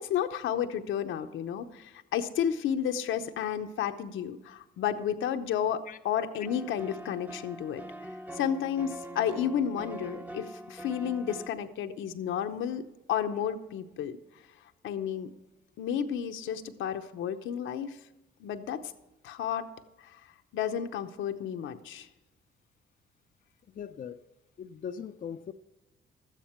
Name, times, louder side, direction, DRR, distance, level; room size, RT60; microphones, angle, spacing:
voice 1, 0.0-7.8 8.3-12.8 13.1-14.2 14.8-15.3 15.8-18.0 18.4-18.8 19.2-19.7 20.0-20.2 20.5-22.1, left 9 dB, 80° left, 0.8 m, -32 dB
sound 1, 6.4-11.5, right 1 dB, 10° right, 0.8 m, -43 dB
voice 2, 23.7-24.2 24.6-25.5, left 7 dB, 45° left, 0.5 m, -40 dB
12.5 x 9.1 x 4.4 m
cardioid pair, 90°, 20 cm